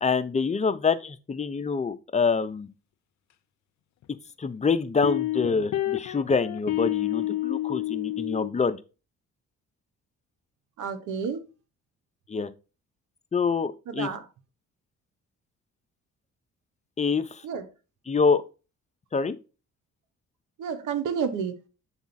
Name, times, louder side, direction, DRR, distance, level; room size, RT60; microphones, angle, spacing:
voice 1, 0.0-2.7 4.4-8.8 12.3-12.5 13.3-14.1 17.0-17.4 18.1-18.4 19.1-19.4, left 5 dB, 25° left, 0.6 m, -26 dB
sound 1, 4.0-4.1 5.0-8.5, left 15 dB, 65° left, 0.6 m, -29 dB
voice 2, 10.8-11.4 13.9-14.2 17.4-17.6 20.6-21.5, right 6 dB, 80° right, 1.1 m, -30 dB
7.2 x 3.5 x 4.1 m
cardioid pair, 90°, 30 cm